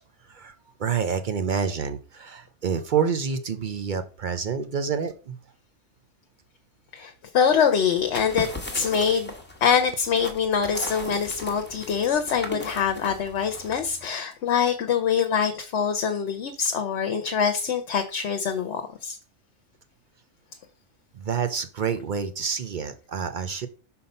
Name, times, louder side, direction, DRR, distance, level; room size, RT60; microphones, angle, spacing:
voice 1, 0.8-5.4 21.1-23.7, right 6 dB, 50° right, 10 dB, 0.6 m, -28 dB
voice 2, 6.9-8.5 8.7-9.3 9.6-19.2, left 7 dB, 70° left, 6 dB, 1.0 m, -24 dB
sound 1, 8.0-14.1, left 1 dB, 10° left, 1.2 m, -37 dB
5.6 x 4.3 x 5.2 m, 0.36 s
omnidirectional pair, 1.2 m